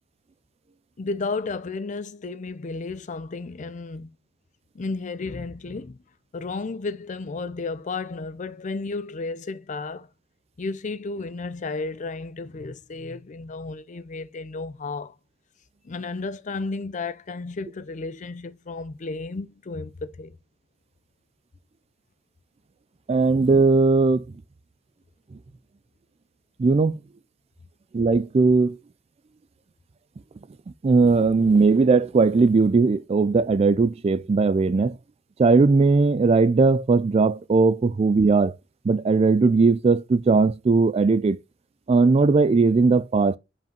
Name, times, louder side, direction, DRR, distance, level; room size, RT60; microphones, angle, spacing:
voice 1, 1.0-4.1 4.7-6.0 6.3-10.1 10.6-15.1 15.8-20.4, left 3 dB, 40° left, 0.5 m, -33 dB
voice 2, 23.1-24.2 26.6-27.0 27.9-28.8 30.8-35.0 35.4-38.6 38.8-41.4 41.9-43.4, right 4 dB, 30° right, 0.3 m, -19 dB
5.4 x 5.2 x 5.1 m
head